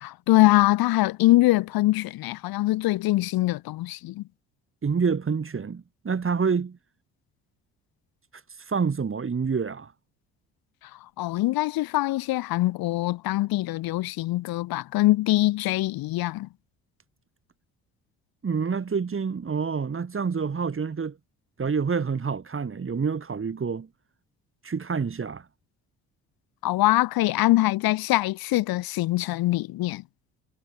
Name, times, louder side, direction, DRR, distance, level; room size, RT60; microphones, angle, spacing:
voice 1, 0.0-4.2 11.2-16.5 26.6-30.0, left 17 dB, 65° left, 1.6 m, -23 dB
voice 2, 4.8-6.8 8.7-9.9 18.4-21.2 21.6-23.9 24.6-25.4, right 5 dB, 35° right, 3.0 m, -27 dB
hypercardioid pair, 55°, 38 cm